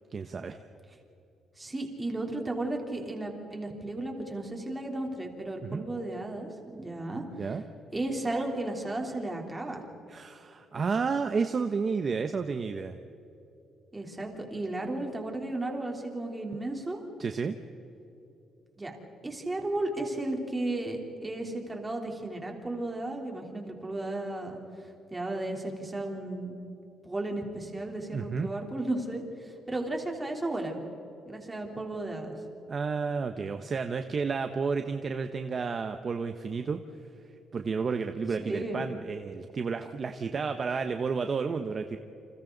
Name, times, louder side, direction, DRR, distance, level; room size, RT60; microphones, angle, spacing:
voice 1, 0.1-0.6 5.6-5.9 7.4-7.6 10.1-13.0 17.2-17.6 28.1-28.5 32.7-36.8 37.5-42.0, right 5 dB, 35° right, 7 dB, 0.9 m, -31 dB
voice 2, 1.6-7.6 7.9-9.8 13.9-17.0 18.8-18.9 19.2-24.6 25.1-26.6 27.0-30.8 31.3-32.3 38.4-38.8, right 2 dB, 15° right, 1 dB, 3.5 m, -34 dB
29.5 x 27.0 x 4.0 m, 3.0 s
cardioid pair, 140°, 0 cm